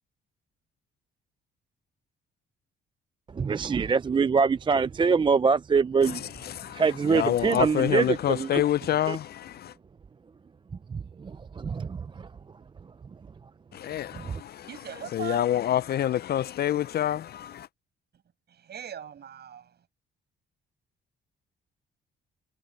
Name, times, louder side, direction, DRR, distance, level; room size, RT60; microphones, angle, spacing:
voice 1, 3.3-6.2 6.7-8.6 9.1-9.2 10.9-11.7 14.2-14.4, right 5 dB, 25° right, 0.4 m, -24 dB
voice 2, 7.1-9.5 13.8-14.3 15.1-17.7, left 11 dB, 55° left, 0.4 m, -26 dB
voice 3, 14.5-15.6 18.5-19.8, right 8 dB, 55° right, 6.4 m, -40 dB
cardioid pair, 90°, 20 cm